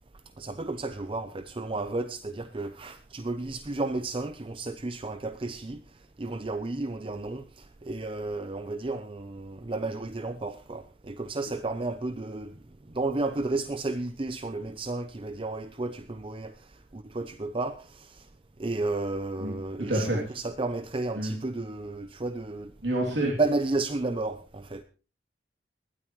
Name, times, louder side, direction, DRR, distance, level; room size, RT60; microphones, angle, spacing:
voice 1, 0.4-5.8 6.2-12.6 12.9-18.3 18.6-22.7 23.1-24.8, right 2 dB, 30° right, 0.6 m, -32 dB
voice 2, 19.8-20.2 21.2-21.3 22.8-23.3, right 1 dB, 90° right, 3.0 m, -27 dB
19.5 x 12.5 x 3.1 m
head